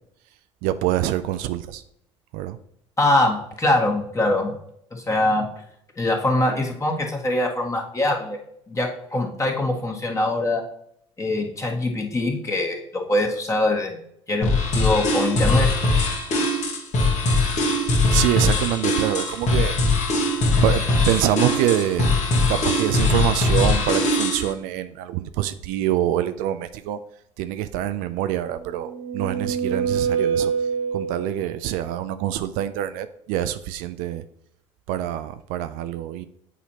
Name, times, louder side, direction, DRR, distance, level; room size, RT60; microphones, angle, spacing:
voice 1, 0.6-1.8 2.3-2.6 18.1-19.8 20.6-22.1 22.5-27.0 27.4-34.2 34.9-36.2, right 12 dB, 65° right, 11 dB, 0.4 m, -25 dB
voice 2, 3.0-4.5 4.9-5.4 6.0-8.4 8.7-10.6 11.2-14.0 14.3-15.7 16.3-16.4, left 1 dB, 20° left, 0 dB, 1.7 m, -23 dB
sound 1, 14.4-24.5, left 2 dB, 50° left, 1.5 m, -21 dB
sound 2, 28.5-31.5, right 6 dB, 85° right, 1.6 m, -26 dB
8.2 x 4.2 x 2.9 m, 0.73 s
hypercardioid pair, 60°, 16 cm